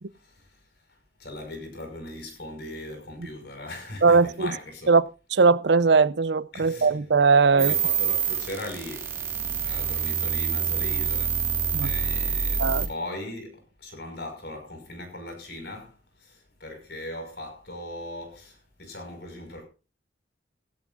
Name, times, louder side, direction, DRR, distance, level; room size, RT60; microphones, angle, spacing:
voice 1, 0.2-0.6 1.2-4.9 6.5-7.0 7.5-9.1 9.6-11.4 11.8-15.9 16.2-19.6, left 1 dB, 65° left, 5.7 m, -39 dB
voice 2, 4.0-4.5 4.9-5.0 5.3-7.7 11.7-11.9 12.6-12.9, right 4 dB, 75° right, 0.6 m, -19 dB
sound 1, 7.6-12.9, right 6 dB, 15° right, 2.0 m, -26 dB
16.5 x 16.5 x 2.5 m
head